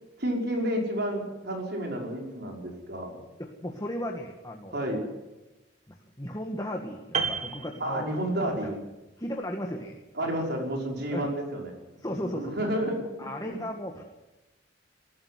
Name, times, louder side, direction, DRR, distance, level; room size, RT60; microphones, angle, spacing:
voice 1, 0.2-3.2 4.7-5.0 7.8-8.8 10.2-11.7 12.3-13.7, right 1 dB, 60° right, 1 dB, 5.6 m, -31 dB
voice 2, 3.4-5.0 5.9-8.1 8.5-8.7 9.2-10.4 11.1-11.3 12.0-12.6 13.2-14.0, equal, 20° left, 2 dB, 1.7 m, -36 dB
Piano, 7.1-8.6 8.9-9.1, right 5 dB, 40° right, 2.1 m, -32 dB
21.0 x 14.0 x 9.5 m, 1.0 s
head